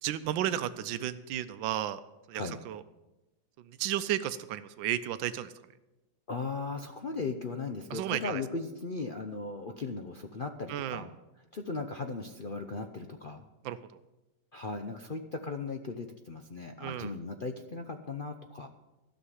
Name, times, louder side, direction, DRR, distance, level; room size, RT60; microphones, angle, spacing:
voice 1, 0.0-2.0 2.3-2.8 3.7-5.5 7.9-8.4 10.7-11.0 13.6-13.8 16.8-17.1, right 11 dB, 90° right, 12 dB, 1.4 m, -33 dB
voice 2, 6.3-11.1 11.5-13.4 14.5-18.7, left 3 dB, 70° left, 6 dB, 0.5 m, -37 dB
12.5 x 6.6 x 9.9 m, 1.0 s
omnidirectional pair, 2.0 m